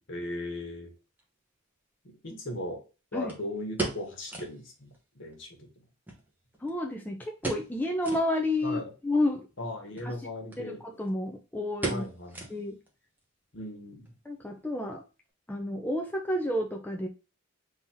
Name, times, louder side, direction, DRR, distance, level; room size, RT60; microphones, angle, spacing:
voice 1, 0.1-0.9 2.0-2.8 3.1-5.7 8.6-8.9 9.6-10.8 11.9-12.5 13.5-14.1, left 1 dB, 60° left, 2 dB, 1.4 m, -38 dB
sound 1, 1.2-1.3 3.3-4.6 4.9-5.0 5.3-5.4 6.1-6.9 7.4-7.8 8.0-8.3 8.8-8.9 9.8-10.1 10.5-10.6 10.9-11.3 11.8-12.9 13.2-13.3 13.9-14.2 14.5-14.6, right 3 dB, 10° right, 0.9 m, -36 dB
voice 2, 6.6-9.5 10.0-10.1 10.6-12.0 12.5-12.8 14.3-15.0 15.5-17.1, left 1 dB, 10° left, 2 dB, 0.4 m, -30 dB
3.8 x 2.8 x 4.3 m, 0.32 s
head